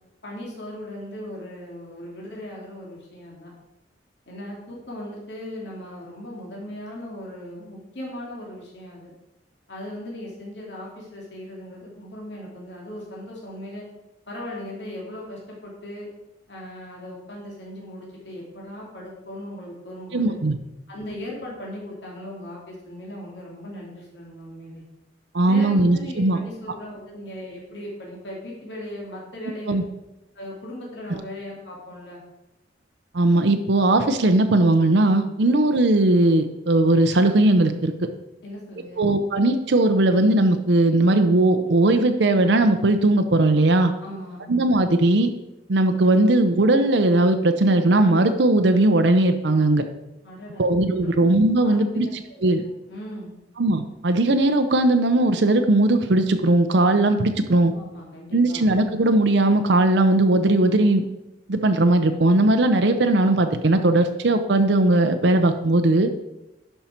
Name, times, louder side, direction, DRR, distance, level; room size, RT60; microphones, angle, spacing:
voice 1, 0.2-3.5 4.3-9.1 9.7-13.9 14.3-16.1 16.5-20.4 20.9-24.8 25.4-29.8 30.3-32.2 35.4-35.6 38.4-39.0 44.0-44.5 50.2-50.7 51.0-51.3 51.6-52.6 52.9-53.3 57.6-58.7, left 1 dB, 70° left, -3 dB, 2.5 m, -38 dB
voice 2, 20.1-20.6 25.3-26.4 29.7-29.8 33.1-37.9 39.0-43.9 44.5-45.3 45.7-49.8 50.6-52.6 53.6-57.7 58.3-61.0 61.5-66.1, right 2 dB, 70° right, 7 dB, 0.7 m, -18 dB
10.5 x 5.7 x 4.5 m, 0.93 s
head